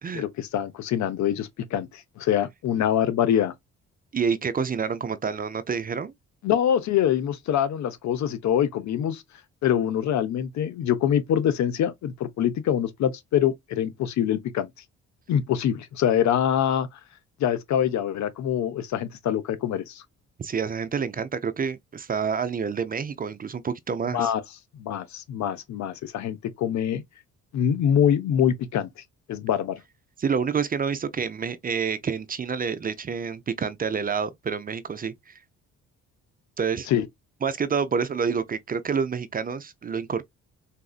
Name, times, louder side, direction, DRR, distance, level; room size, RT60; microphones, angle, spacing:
voice 1, 0.1-3.5 6.4-9.2 9.6-14.7 15.3-16.9 17.4-20.0 24.1-24.4 24.7-27.0 27.5-28.9 29.3-29.8 36.9-37.1, left 9 dB, 65° left, 0.7 m, -24 dB
voice 2, 4.1-6.1 20.4-24.3 30.2-35.4 36.6-36.9 37.4-40.2, right 6 dB, 30° right, 0.4 m, -28 dB
4.1 x 2.5 x 2.3 m
cardioid pair, 90°, 30 cm